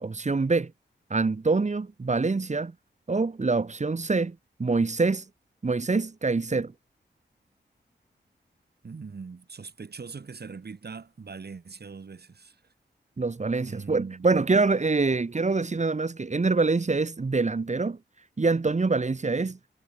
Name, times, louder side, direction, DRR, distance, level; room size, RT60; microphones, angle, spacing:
voice 1, 0.0-0.7 1.1-2.7 3.1-5.2 5.6-6.7 13.2-18.0 18.4-19.6, right 3 dB, 40° right, 1.6 m, -25 dB
voice 2, 8.8-12.6 13.6-14.4, right 5 dB, 60° right, 3.2 m, -41 dB
wide cardioid pair, 70°, 19 cm